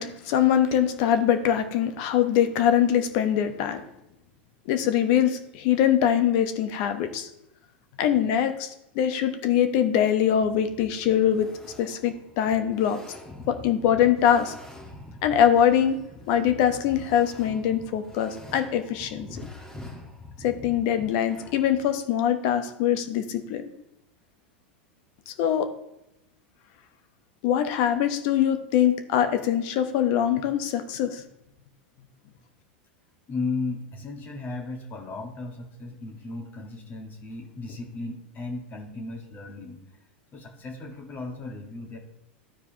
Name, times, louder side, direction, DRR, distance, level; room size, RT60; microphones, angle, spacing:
voice 1, 0.0-3.8 4.7-7.3 8.0-8.7 8.9-11.5 11.8-13.0 13.5-14.5 15.2-16.0 16.3-19.5 20.4-23.6 25.3-25.7 27.4-31.2, left 9 dB, 55° left, 8 dB, 1.0 m, -23 dB
sound 1, 10.3-21.9, left 1 dB, 10° left, 1.7 m, -45 dB
voice 2, 33.3-39.8 40.3-42.0, left 3 dB, 35° left, 3 dB, 1.8 m, -35 dB
13.0 x 4.7 x 3.0 m, 0.83 s
hypercardioid pair, 100°, 6 cm